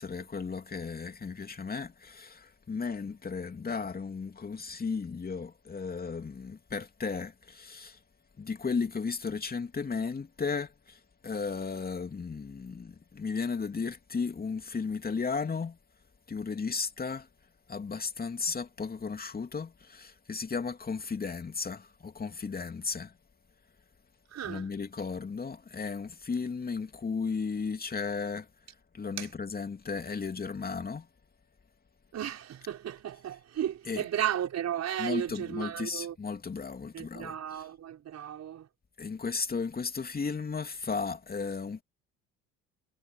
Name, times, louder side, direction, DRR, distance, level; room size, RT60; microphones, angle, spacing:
voice 1, 0.0-8.0 8.4-15.8 16.3-17.3 17.7-23.1 24.4-28.5 28.9-31.1 33.9-34.0 35.0-37.7 39.0-41.8, left 5 dB, 25° left, 3.0 m, -35 dB
voice 2, 24.3-24.7 29.2-29.3 32.1-36.2 36.9-38.7, right 10 dB, 45° right, 5.3 m, -34 dB
figure-of-eight pair, 65°, 38 cm